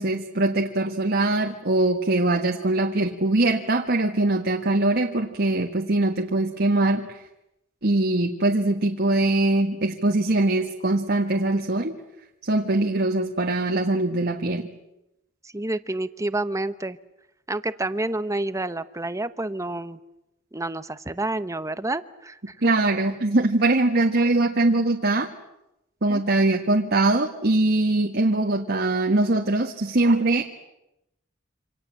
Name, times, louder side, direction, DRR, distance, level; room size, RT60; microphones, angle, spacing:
voice 1, 0.0-7.2 7.8-11.9 12.4-14.7 22.6-25.3 26.0-30.4, right 2 dB, 55° right, 3 dB, 1.7 m, -22 dB
voice 2, 15.4-17.0 17.5-20.0 20.5-22.6 26.1-26.2, right 2 dB, 15° right, 13 dB, 0.9 m, -29 dB
27.5 x 26.5 x 7.6 m, 0.88 s
head